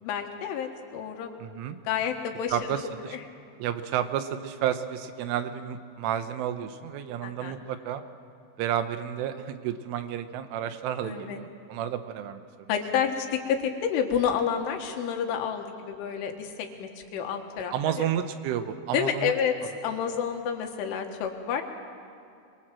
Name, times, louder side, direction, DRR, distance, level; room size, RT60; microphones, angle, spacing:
voice 1, 0.0-1.3 1.9-2.6 3.1-3.2 7.2-7.5 11.0-11.4 12.7-17.7 18.9-21.6, left 7 dB, 80° left, 4 dB, 4.1 m, -29 dB
voice 2, 1.4-1.8 2.5-3.2 3.6-8.0 8.6-12.7 17.7-19.3 20.1-20.2, right 10 dB, 85° right, 9 dB, 3.6 m, -31 dB
24.0 x 22.5 x 7.6 m, 2.5 s
omnidirectional pair, 5.5 m